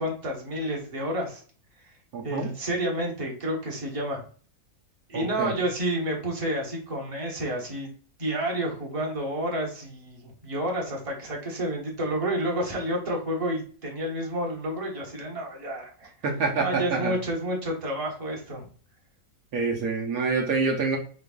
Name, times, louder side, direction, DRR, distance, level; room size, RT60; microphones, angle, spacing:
voice 1, 0.0-1.4 2.2-4.2 5.1-7.9 8.2-16.1 16.5-18.7, right 1 dB, 25° right, -2 dB, 1.2 m, -30 dB
voice 2, 2.1-2.5 5.1-5.6 16.2-17.1 19.5-21.0, right 4 dB, 70° right, 1 dB, 1.3 m, -27 dB
4.8 x 3.4 x 2.3 m, 0.44 s
omnidirectional pair, 1.6 m